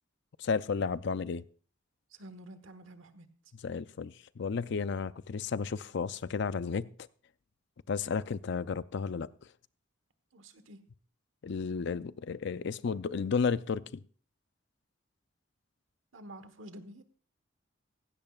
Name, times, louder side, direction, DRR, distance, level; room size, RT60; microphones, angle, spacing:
voice 1, 0.4-1.4 3.6-6.9 7.9-9.3 11.4-14.0, left 5 dB, 65° left, 0.5 m, -33 dB
voice 2, 2.1-3.3 10.3-10.8 16.1-17.0, right 1 dB, 90° right, 1.3 m, -49 dB
16.0 x 15.5 x 2.4 m
head